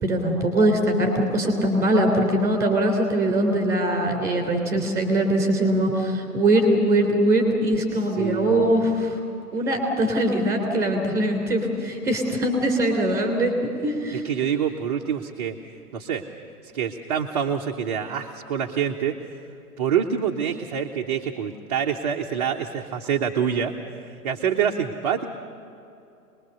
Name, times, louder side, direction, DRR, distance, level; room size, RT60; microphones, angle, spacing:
voice 1, 0.0-9.2 9.5-13.5 13.8-14.2, right 1 dB, 5° right, 2 dB, 3.3 m, -22 dB
voice 2, 7.9-8.9 14.1-15.6 15.9-16.2 16.6-19.4 19.8-25.3, right 8 dB, 25° right, 1 dB, 0.8 m, -26 dB
25.0 x 20.5 x 6.8 m, 2.7 s
figure-of-eight pair, 125°, 47 cm